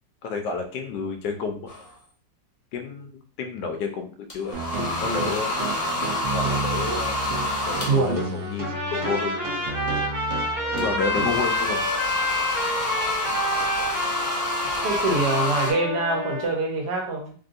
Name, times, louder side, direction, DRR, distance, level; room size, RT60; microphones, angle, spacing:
voice 1, 0.2-1.7 2.7-3.1 3.4-5.5 6.3-7.2 7.7-9.4 10.8-11.8, left 4 dB, 75° left, 5 dB, 1.2 m, -30 dB
sound 1, 1.7-1.9 4.3-8.3 10.8-15.7, left 2 dB, 40° left, 0.5 m, -28 dB
sound 2, 4.5-11.4, right 3 dB, 85° right, 0.6 m, -32 dB
voice 2, 5.0-5.4 7.9-8.2 14.8-17.3, right 3 dB, 65° right, 0 dB, 1.4 m, -25 dB
Trumpet, 8.6-16.5, left 1 dB, 40° right, 1.4 m, -28 dB
3.3 x 2.7 x 2.5 m, 0.43 s
omnidirectional pair, 2.0 m